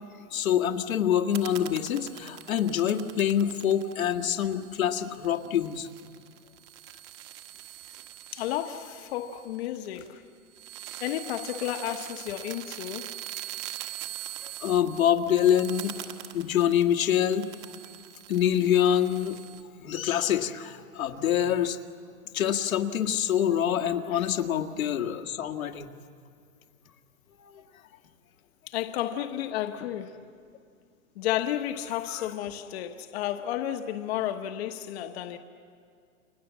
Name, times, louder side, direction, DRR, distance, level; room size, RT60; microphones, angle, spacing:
voice 1, 0.3-5.9 14.4-15.9 16.3-17.5 18.3-19.4 19.8-21.8 22.3-25.9 27.4-27.6 32.2-32.3, left 9 dB, 80° left, 1.9 m, -26 dB
sound 1, 1.3-10.2 10.5-19.6, right 12 dB, 30° right, 1.6 m, -43 dB
voice 2, 8.3-10.2 11.0-13.1 24.1-24.3 28.7-30.3 31.2-35.4, left 12 dB, 50° left, 1.3 m, -32 dB
30.0 x 26.0 x 7.4 m
hypercardioid pair, 150°, 41 cm